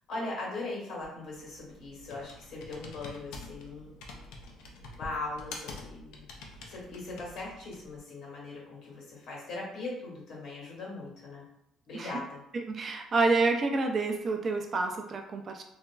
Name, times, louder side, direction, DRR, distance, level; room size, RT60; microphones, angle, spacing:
voice 1, 0.1-3.9 4.9-6.2 6.6-11.4 11.9-12.4, left 2 dB, 65° left, -3 dB, 1.1 m, -39 dB
Computer keyboard, 1.0-8.0, left 3 dB, 90° left, 0.4 m, -47 dB
voice 2, 12.7-15.6, right 3 dB, 35° right, 4 dB, 0.3 m, -28 dB
2.8 x 2.4 x 2.3 m, 0.83 s
cardioid pair, 140°, 0 cm